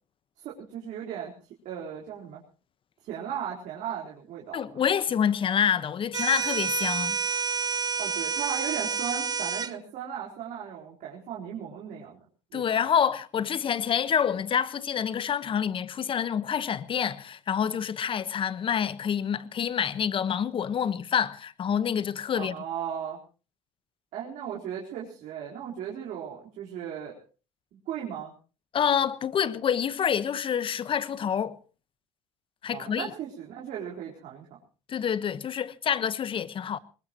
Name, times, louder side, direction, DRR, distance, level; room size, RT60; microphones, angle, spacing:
voice 1, 0.4-1.3 1.6-2.4 3.0-4.6 8.0-12.2 12.5-12.8 22.3-23.2 24.1-27.2 27.7-28.3 32.7-34.6, right 9 dB, 65° right, 4.2 m, -36 dB
voice 2, 4.5-7.2 12.5-22.5 28.7-31.6 32.6-33.1 34.9-36.8, left 8 dB, 40° left, 1.2 m, -27 dB
sound 1, 6.1-9.7, right 5 dB, 30° right, 0.9 m, -29 dB
21.5 x 20.0 x 3.0 m
supercardioid pair, 85°, 13 cm